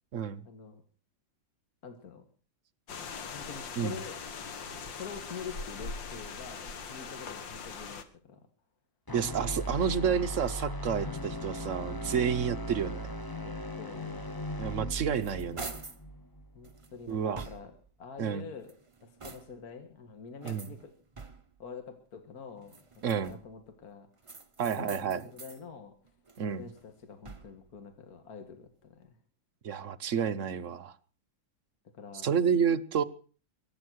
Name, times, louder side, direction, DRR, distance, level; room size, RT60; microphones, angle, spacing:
voice 1, 0.5-0.8 1.8-2.3 3.3-4.2 4.9-8.4 13.4-14.3 16.6-18.7 19.0-20.9 21.6-24.1 24.7-25.9 26.6-29.2 31.9-32.3, left 5 dB, 50° left, 7 dB, 2.2 m, -46 dB
sound 1, 2.9-8.0, left 5 dB, 70° left, 2.2 m, -41 dB
sound 2, 9.1-17.2, equal, 20° left, 0.7 m, -38 dB
voice 2, 9.1-13.1 14.6-15.7 17.1-17.4 18.2-18.4 20.4-20.7 23.0-23.4 24.6-25.2 26.4-26.7 29.6-30.9 32.2-33.0, right 7 dB, 50° right, 10 dB, 1.0 m, -30 dB
sound 3, 14.7-16.1 16.6-17.9 18.5-19.7 20.4-21.7 22.6-23.6 24.2-25.6 26.0-27.7, right 4 dB, 25° right, 0.6 m, -47 dB
22.5 x 9.9 x 6.4 m, 0.41 s
omnidirectional pair, 2.1 m